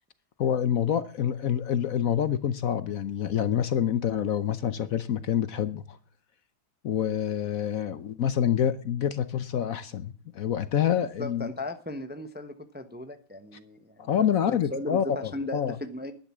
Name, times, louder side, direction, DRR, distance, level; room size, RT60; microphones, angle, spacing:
voice 1, 0.4-6.0 6.8-11.5 14.0-15.8, left 9 dB, 60° left, 14 dB, 1.1 m, -27 dB
voice 2, 11.2-16.1, left 1 dB, 10° right, 9 dB, 0.7 m, -37 dB
11.0 x 10.5 x 7.3 m, 0.42 s
omnidirectional pair, 1.8 m